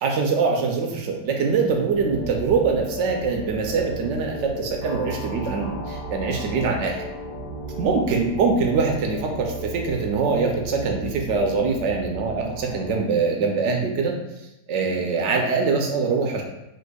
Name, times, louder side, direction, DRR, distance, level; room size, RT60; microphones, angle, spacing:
voice 1, 0.0-7.0 7.8-14.1 14.7-16.4, right 4 dB, 75° right, 1 dB, 0.6 m, -23 dB
sound 1, 1.4-13.0, right 1 dB, 60° left, 1.2 m, -34 dB
4.2 x 2.6 x 2.2 m, 0.87 s
omnidirectional pair, 1.7 m